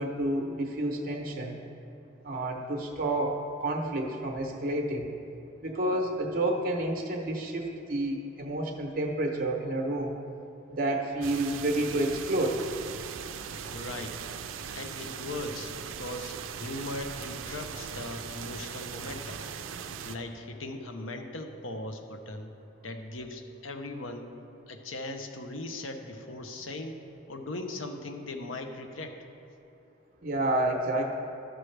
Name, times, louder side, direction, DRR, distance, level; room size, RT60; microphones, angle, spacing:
voice 1, 0.0-1.6 2.2-5.1 5.6-10.2 10.7-12.6 30.2-31.1, right 1 dB, 50° right, 1 dB, 0.8 m, -29 dB
sound 1, 11.2-20.2, right 7 dB, 90° right, 0.4 m, -39 dB
voice 2, 13.7-14.2 14.7-19.4 20.0-22.5 22.8-24.4 24.7-27.0 27.3-29.2, left 2 dB, 90° left, 6 dB, 0.7 m, -39 dB
12.5 x 6.2 x 3.3 m, 2.7 s
head